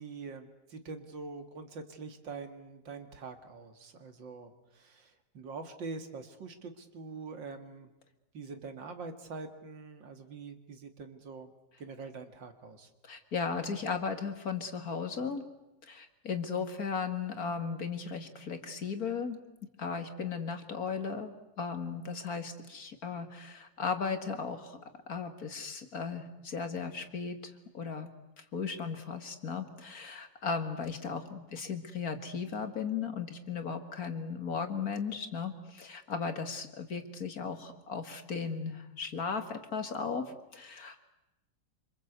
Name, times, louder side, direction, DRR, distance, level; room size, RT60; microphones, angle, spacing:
voice 1, 0.0-7.9 8.3-11.5 11.8-12.9, right 4 dB, 85° right, 7 dB, 2.8 m, -44 dB
voice 2, 13.0-15.4 15.8-19.4 19.8-21.3 21.6-24.8 25.1-28.1 28.4-41.1, left 5 dB, 55° left, 7 dB, 2.4 m, -36 dB
26.5 x 25.5 x 8.2 m, 0.96 s
omnidirectional pair, 1.9 m